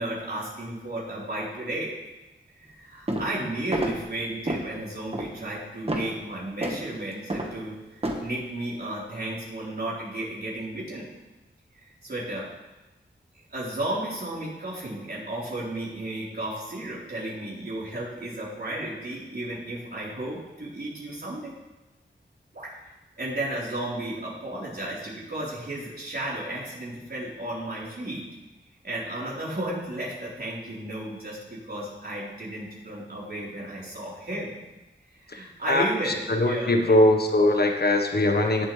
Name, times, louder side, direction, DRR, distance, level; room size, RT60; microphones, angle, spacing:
voice 1, 0.0-1.9 2.5-11.1 11.8-12.5 13.5-21.5 22.5-22.7 23.2-28.2 28.8-34.5 35.3-37.0, right 1 dB, 55° right, -6 dB, 4.2 m, -33 dB
sound 1, 3.1-3.4 3.7-4.0 4.5-4.7 5.1-5.3 5.9-6.1 6.6-6.8 7.3-7.5 8.0-8.2, right 1 dB, 30° right, 1.5 m, -29 dB
voice 2, 35.3-38.7, left 1 dB, 55° left, 3 dB, 1.3 m, -22 dB
19.0 x 7.6 x 3.4 m, 1.0 s
wide cardioid pair, 85°, 20 cm